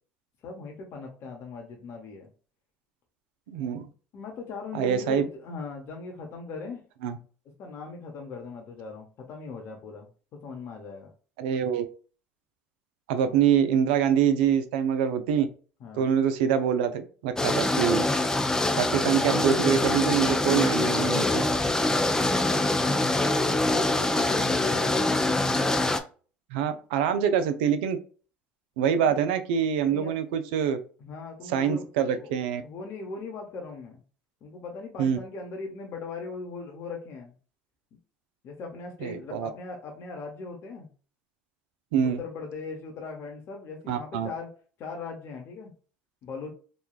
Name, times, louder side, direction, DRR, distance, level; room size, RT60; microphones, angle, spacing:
voice 1, 0.4-2.3 4.1-6.8 7.6-11.1 15.8-16.1 23.5-25.3 28.9-29.3 29.8-30.1 31.0-31.9 32.2-32.3 32.6-34.0 34.4-37.3 38.4-40.9 42.0-44.5 44.8-45.7 46.2-46.5, left 4 dB, 55° left, 1 dB, 0.8 m, -39 dB
voice 2, 3.5-3.9 4.7-5.2 7.0-7.2 11.4-11.9 13.1-15.5 15.9-18.0 18.8-21.4 26.5-28.0 28.8-30.8 31.5-32.6 35.0-35.2 39.0-39.5 41.9-42.2 43.9-44.3, right 8 dB, 80° right, 10 dB, 0.4 m, -25 dB
sound 1, 17.4-26.0, left 2 dB, 10° left, 0.4 m, -24 dB
3.0 x 2.3 x 2.2 m, 0.38 s
hypercardioid pair, 75°, 5 cm